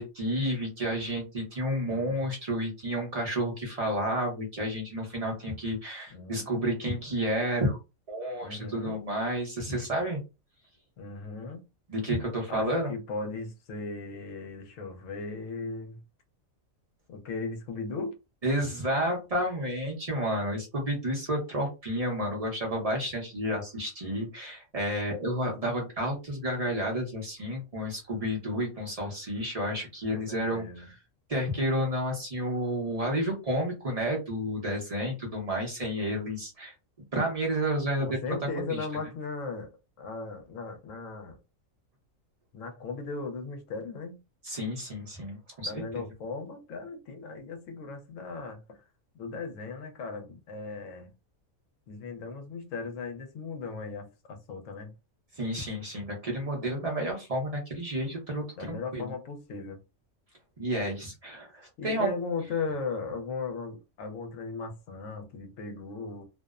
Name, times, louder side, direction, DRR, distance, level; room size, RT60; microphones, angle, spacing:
voice 1, 0.0-7.8 8.1-10.2 11.9-12.9 18.4-30.9 31.3-36.7 37.1-38.2 38.6-38.8 44.4-46.0 55.3-59.1 60.6-62.1, equal, 35° right, 0.6 m, -31 dB
voice 2, 1.9-2.2 6.1-6.4 8.4-9.0 9.7-9.9 11.0-11.6 12.5-16.0 17.1-18.2 30.1-30.9 38.0-39.7 40.0-41.4 42.5-44.2 45.6-48.8 49.1-51.1 51.9-54.9 58.6-59.8 61.8-66.2, left 4 dB, 70° left, 1.0 m, -37 dB
2.6 x 2.0 x 2.3 m
omnidirectional pair, 1.4 m